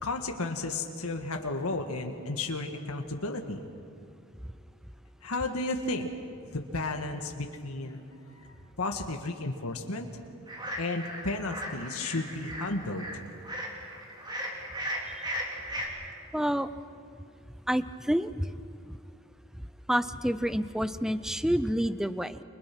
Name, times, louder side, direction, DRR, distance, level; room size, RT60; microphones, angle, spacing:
voice 1, 0.0-3.7 5.2-6.1 6.5-8.0 8.4-10.1 10.8-13.2, left 2 dB, 80° left, 4 dB, 1.7 m, -33 dB
sound 1, 10.5-15.9, equal, 20° right, 3.8 m, -37 dB
voice 2, 16.3-16.7 17.7-18.5 18.9-19.0 19.9-22.4, equal, ahead, 13 dB, 0.6 m, -28 dB
29.5 x 25.5 x 6.1 m, 2.5 s
head